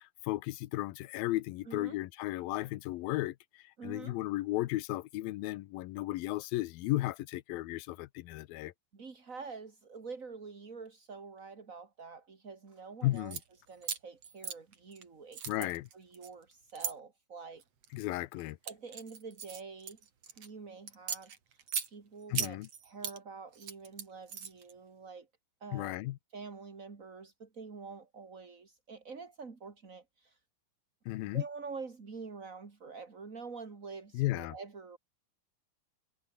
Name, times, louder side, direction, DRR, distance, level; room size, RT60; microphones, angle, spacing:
voice 1, 0.0-8.7 13.0-13.4 15.5-15.8 17.9-18.6 22.3-22.7 25.7-26.2 31.1-31.4 34.1-34.5, left 17 dB, 75° left, 2.5 m, -34 dB
voice 2, 1.7-2.0 3.8-4.2 8.9-13.4 13.7-17.6 18.7-20.0 20.3-21.3 21.8-25.3 25.6-25.9 26.3-30.4 31.3-35.0, right 4 dB, 30° right, 1.9 m, -47 dB
sound 1, 13.1-13.4 13.8-15.0 15.3-16.9 17.6-17.9 18.4-20.5 20.9-21.9 22.3-23.2 23.5-24.7, right 7 dB, 45° right, 3.2 m, -38 dB
omnidirectional pair, 4.5 m